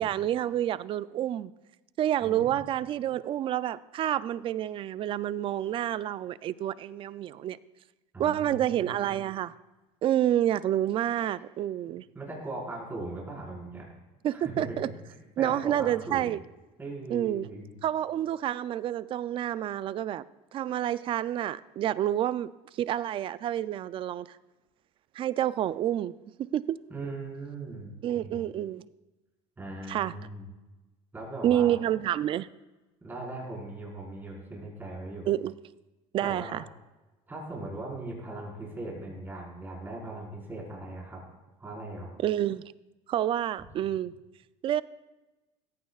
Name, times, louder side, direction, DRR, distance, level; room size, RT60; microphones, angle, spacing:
voice 1, 0.0-1.5 2.0-7.6 8.2-9.5 10.0-12.0 14.2-14.9 15.4-16.4 17.1-17.5 17.8-20.2 20.5-22.5 22.8-24.4 25.2-26.1 26.4-26.8 28.0-28.8 29.9-30.1 31.4-32.5 35.3-35.5 36.1-36.6 42.2-42.6 43.1-44.1 44.6-44.8, right 11 dB, 35° right, 17 dB, 0.4 m, -28 dB
voice 2, 2.2-2.6 8.1-9.0 12.1-13.8 14.3-14.7 15.1-16.3 16.8-17.7 26.9-28.3 29.6-30.5 31.1-31.7 33.0-35.2 36.2-36.6 37.3-41.2 41.6-42.1, right 2 dB, 15° right, -4 dB, 4.9 m, -39 dB
17.0 x 15.0 x 2.4 m, 1.1 s
cardioid pair, 140°, 14 cm